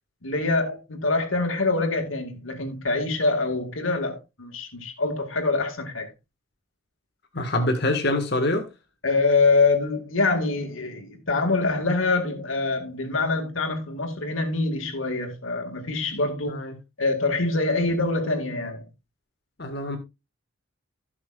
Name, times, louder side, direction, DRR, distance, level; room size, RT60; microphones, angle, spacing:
voice 1, 0.2-6.1 9.0-16.6 17.0-18.8, left 3 dB, 80° left, 2.1 m, -25 dB
voice 2, 7.3-8.7 16.5-16.8 19.6-20.0, left 1 dB, 55° left, 1.7 m, -25 dB
16.5 x 5.9 x 2.4 m
head